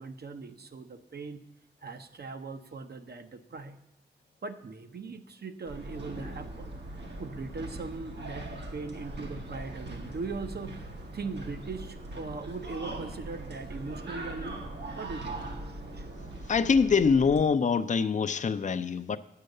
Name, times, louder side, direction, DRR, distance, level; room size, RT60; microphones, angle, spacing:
voice 1, 0.0-1.4 1.8-3.8 4.4-6.7 7.2-14.6 15.0-16.1, right 4 dB, 70° right, 8 dB, 0.8 m, -40 dB
sound 1, 5.7-17.4, right 2 dB, 85° right, 1.4 m, -40 dB
voice 2, 16.5-19.2, left 5 dB, 45° left, 12 dB, 0.4 m, -24 dB
9.5 x 6.6 x 6.5 m, 0.84 s
wide cardioid pair, 80°, 17 cm